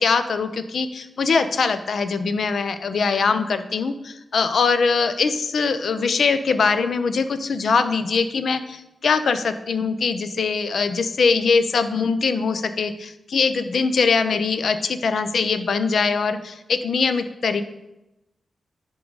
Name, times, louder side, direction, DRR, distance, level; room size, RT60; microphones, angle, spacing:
voice 1, 0.0-17.6, left 5 dB, 70° left, 10 dB, 0.6 m, -22 dB
10.0 x 3.8 x 4.7 m, 0.92 s
wide cardioid pair, 100°, 0 cm